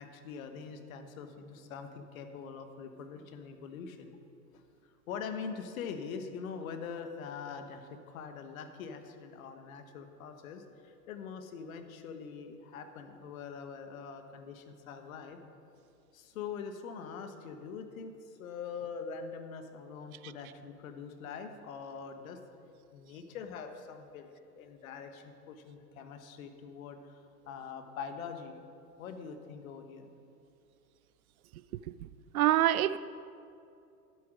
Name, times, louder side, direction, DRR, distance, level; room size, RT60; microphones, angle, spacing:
voice 1, 0.0-4.1 4.5-4.6 5.1-15.4 16.1-22.4 22.9-28.5 29.0-30.1, left 6 dB, 60° left, 7 dB, 1.4 m, -43 dB
voice 2, 32.3-33.0, right 13 dB, 60° right, 16 dB, 0.5 m, -25 dB
12.0 x 8.6 x 6.2 m, 2.5 s
hypercardioid pair, 110°, 48 cm